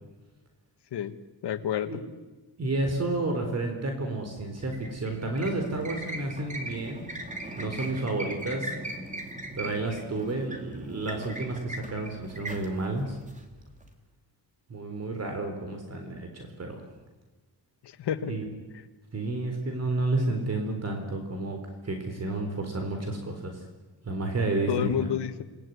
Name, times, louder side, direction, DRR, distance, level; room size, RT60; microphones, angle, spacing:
voice 1, 1.4-2.0 17.8-18.3 24.7-25.4, left 9 dB, 90° left, 10 dB, 1.8 m, -29 dB
voice 2, 2.6-7.1 7.5-8.7 9.6-13.2 14.7-16.8 18.2-18.4 19.1-21.6 21.8-23.6 24.0-25.1, right 2 dB, 40° right, 4 dB, 4.0 m, -31 dB
sound 1, 4.6-13.9, right 1 dB, 20° right, 3.4 m, -39 dB
29.0 x 20.5 x 9.7 m, 1.2 s
wide cardioid pair, 135°, 40 cm